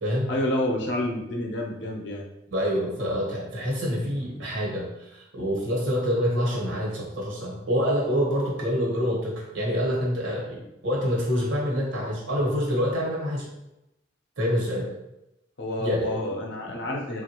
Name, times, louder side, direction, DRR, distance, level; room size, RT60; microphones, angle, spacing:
voice 1, 0.3-2.2 15.6-17.2, left 1 dB, 60° left, -1 dB, 0.6 m, -29 dB
voice 2, 2.5-13.5 14.4-14.9 15.8-16.1, equal, 80° right, -4 dB, 1.1 m, -26 dB
3.2 x 2.5 x 2.9 m, 0.90 s
head